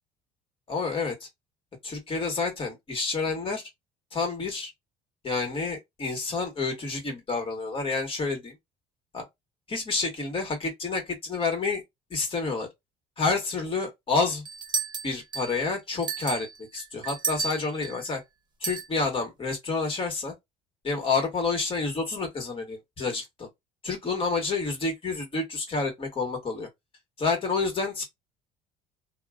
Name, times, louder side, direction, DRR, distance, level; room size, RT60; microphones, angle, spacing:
voice 1, 0.7-1.3 1.8-3.6 4.1-4.7 5.2-8.5 9.1-9.2 9.7-11.8 12.1-12.7 13.2-14.4 15.0-18.2 18.6-20.3 20.8-23.5 23.8-26.7 27.2-28.0, left 4 dB, 35° left, 1.6 m, -29 dB
sound 1, 14.5-15.6 16.0-18.0 18.6-18.9, right 5 dB, 25° right, 1.1 m, -32 dB
2.7 x 2.4 x 2.4 m
supercardioid pair, 95°, 16 cm